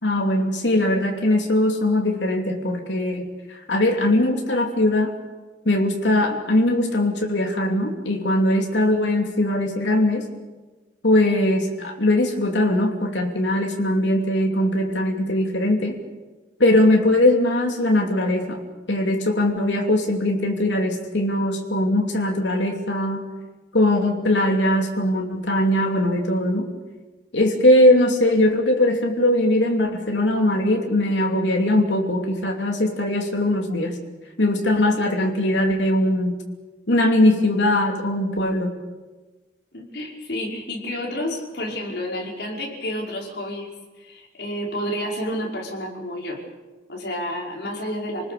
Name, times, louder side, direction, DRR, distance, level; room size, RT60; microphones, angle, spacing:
voice 1, 0.0-5.1 5.6-10.3 11.0-16.0 16.6-18.6 18.9-23.2 23.7-26.7 27.3-34.0 34.4-36.4 36.9-38.8, left 1 dB, 80° left, 2 dB, 2.9 m, -20 dB
voice 2, 39.7-46.4 46.9-48.3, equal, 65° left, -1 dB, 5.4 m, -30 dB
28.5 x 19.5 x 6.9 m, 1.2 s
head